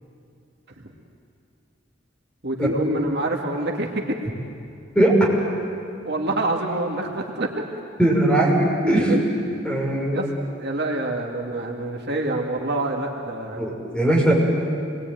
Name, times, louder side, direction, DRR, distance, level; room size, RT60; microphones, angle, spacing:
voice 1, 2.4-4.2 6.1-7.6 8.9-9.2 10.1-10.3 10.6-13.6, right 2 dB, 60° right, 0 dB, 2.2 m, -26 dB
voice 2, 4.9-5.3 8.0-9.1 9.6-10.2 13.6-14.3, right 1 dB, 5° left, -4 dB, 6.5 m, -19 dB
27.5 x 21.5 x 9.3 m, 2.5 s
head